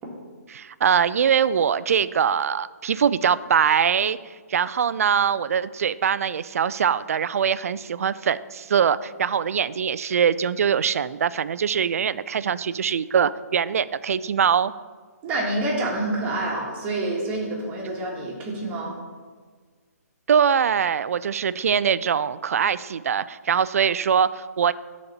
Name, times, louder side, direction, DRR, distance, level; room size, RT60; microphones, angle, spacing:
voice 1, 0.5-4.2 4.5-14.7 20.3-24.7, right 7 dB, 60° right, 16 dB, 0.3 m, -22 dB
voice 2, 15.2-19.0, right 2 dB, 15° right, -3 dB, 1.6 m, -27 dB
11.5 x 4.2 x 4.3 m, 1.5 s
hypercardioid pair, 155°, 9 cm